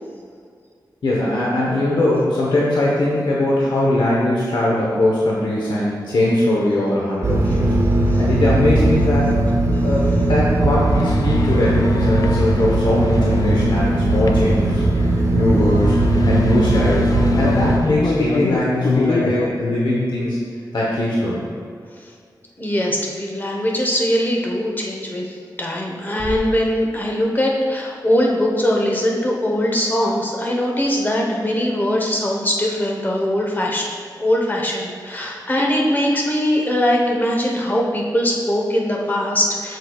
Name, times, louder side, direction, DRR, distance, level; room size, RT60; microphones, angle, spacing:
voice 1, 1.0-7.7 8.2-9.4 9.8-14.8 15.1-17.1 17.4-20.4 20.7-21.5, left 1 dB, 80° left, -5 dB, 1.0 m, -20 dB
sound 1, 7.2-17.8, right 1 dB, 45° right, 0.7 m, -18 dB
sound 2, 10.5-19.5, left 3 dB, 55° left, 0.4 m, -28 dB
voice 2, 22.6-33.9 34.2-39.8, equal, 25° left, -2 dB, 1.1 m, -21 dB
Bass drum, 26.2-27.9, right 1 dB, 10° right, 1.0 m, -34 dB
7.9 x 6.6 x 2.4 m, 2.2 s
wide cardioid pair, 115°, 8 cm